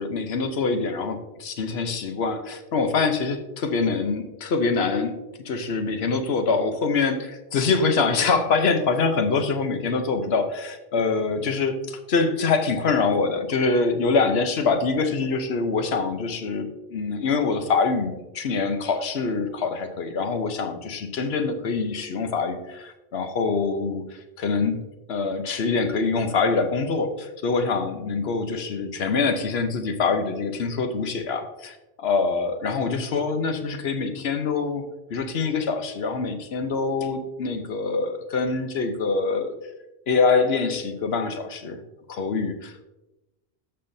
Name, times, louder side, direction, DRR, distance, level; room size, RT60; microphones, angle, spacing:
voice 1, 0.0-5.2 5.5-24.0 24.4-24.8 25.1-34.8 35.1-39.5 40.1-41.8 42.1-42.8, left 4 dB, 75° left, 7 dB, 1.1 m, -24 dB
13.5 x 5.7 x 2.7 m, 1.0 s
omnidirectional pair, 1.1 m